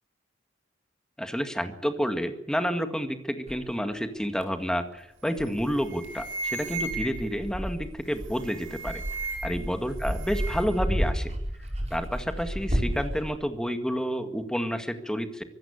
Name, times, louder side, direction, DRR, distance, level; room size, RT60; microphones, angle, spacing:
voice 1, 1.2-9.0 9.4-11.3 11.9-15.4, equal, 5° left, 8 dB, 1.9 m, -30 dB
Dog, 3.5-3.6 4.4-4.5 5.4-13.3, equal, 35° right, 5.4 m, -32 dB
sound 1, 5.3-5.5 5.8-7.4 8.2-9.7 10.0-10.8, right 3 dB, 75° right, 5.6 m, -36 dB
24.5 x 13.5 x 8.6 m, 0.87 s
head